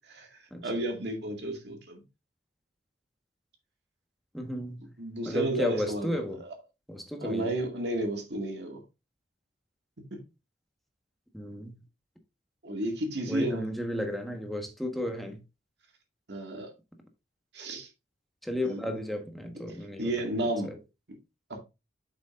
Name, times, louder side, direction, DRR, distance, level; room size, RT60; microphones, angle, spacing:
voice 1, 0.1-2.0 5.0-6.5 7.2-8.8 10.0-10.2 12.6-13.7 16.3-16.7 17.5-17.9 18.6-18.9 20.0-20.8 21.5-21.6, right 1 dB, 65° right, 2.2 m, -32 dB
voice 2, 4.3-4.9 5.2-6.4 6.9-7.5 11.3-11.7 13.3-15.4 18.4-20.1 20.6-20.8, equal, ahead, 1.3 m, -33 dB
8.1 x 6.2 x 2.5 m
head